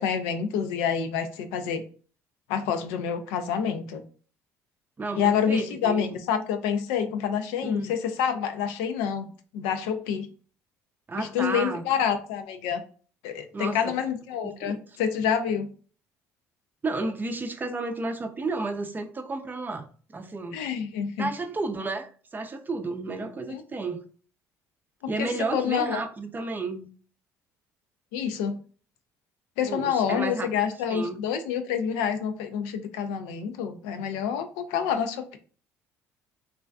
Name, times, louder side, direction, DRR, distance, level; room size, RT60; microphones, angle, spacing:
voice 1, 0.0-1.8 2.5-4.0 5.2-10.3 11.2-12.8 13.2-15.7 20.5-21.3 23.5-23.6 25.2-26.0 28.1-28.6 29.6-35.4, left 7 dB, 80° left, 0.3 m, -27 dB
voice 2, 5.0-6.2 7.6-7.9 11.1-11.9 13.5-14.0 14.4-14.8 16.8-20.6 21.2-24.0 25.1-26.9 29.7-30.5 30.9-31.2, right 3 dB, 25° right, 0.5 m, -32 dB
2.4 x 2.3 x 2.2 m
hypercardioid pair, 70°, 8 cm